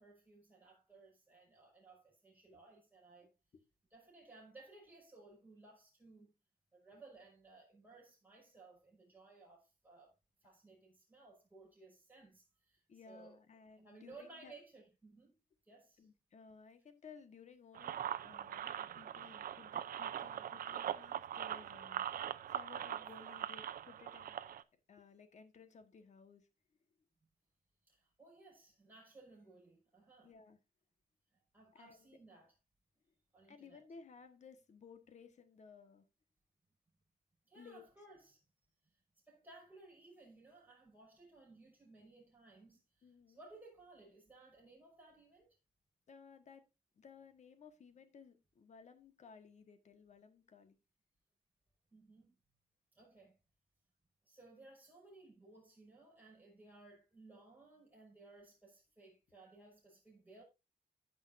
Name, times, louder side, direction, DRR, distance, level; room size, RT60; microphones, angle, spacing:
voice 1, 0.0-3.3 3.9-6.3 6.7-10.1 10.4-13.4 13.8-15.4 15.6-16.1 27.8-30.3 31.3-32.6 33.3-33.8 37.5-38.4 39.3-45.6 51.9-52.4 52.9-53.4 54.2-60.4, right 3 dB, 10° right, 5.7 m, -60 dB
voice 2, 12.9-14.5 16.0-24.3 24.9-26.5 30.2-30.6 31.7-32.1 33.5-36.0 37.5-37.8 43.0-43.4 46.1-46.6 47.0-50.8, left 5 dB, 50° left, 1.5 m, -58 dB
sound 1, 17.8-24.6, right 10 dB, 70° right, 0.6 m, -42 dB
15.5 x 5.5 x 2.6 m
wide cardioid pair, 145°, 15 cm